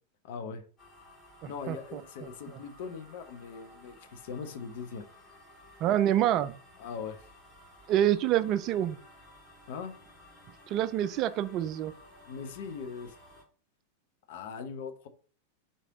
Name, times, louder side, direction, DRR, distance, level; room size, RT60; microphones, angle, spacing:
voice 1, 0.2-0.7 1.4-5.1 6.1-6.3 6.8-7.3 9.7-9.9 12.3-13.1 14.3-15.1, left 5 dB, 50° left, 0.7 m, -40 dB
sound 1, 0.8-13.4, left 1 dB, 25° left, 2.0 m, -55 dB
voice 2, 1.4-2.0 5.8-6.5 7.9-9.0 10.7-11.9, right 11 dB, 35° right, 0.3 m, -27 dB
4.1 x 3.3 x 3.6 m
figure-of-eight pair, 90°, 0 cm